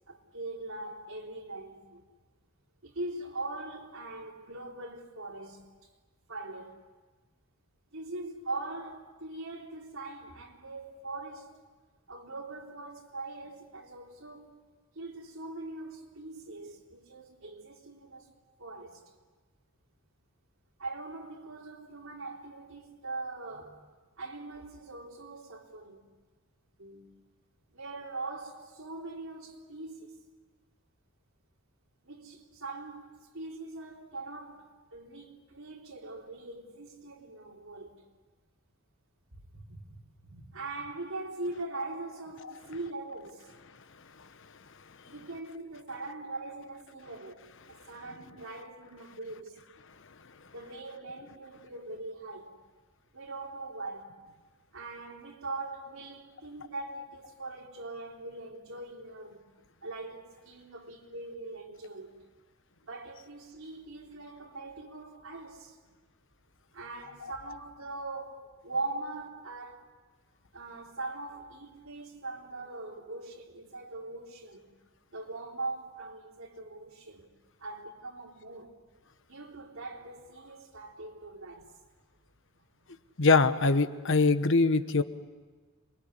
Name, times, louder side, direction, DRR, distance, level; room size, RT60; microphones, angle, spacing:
voice 1, 0.1-2.0 2.8-5.7 6.3-6.8 7.9-11.6 12.1-14.6 15.0-18.3 18.6-19.0 20.8-23.8 24.2-26.0 26.8-27.1 27.7-30.2 32.0-38.1 39.5-43.5 45.0-49.7 50.5-52.5 53.1-54.2 54.7-59.5 59.8-62.2 62.8-65.8 66.7-69.9 70.5-74.7 75.1-77.3 77.6-78.8 79.3-81.7, right 2 dB, 90° right, 3.6 m, -41 dB
voice 2, 83.2-85.0, left 3 dB, 65° left, 1.1 m, -23 dB
27.5 x 22.5 x 9.8 m
head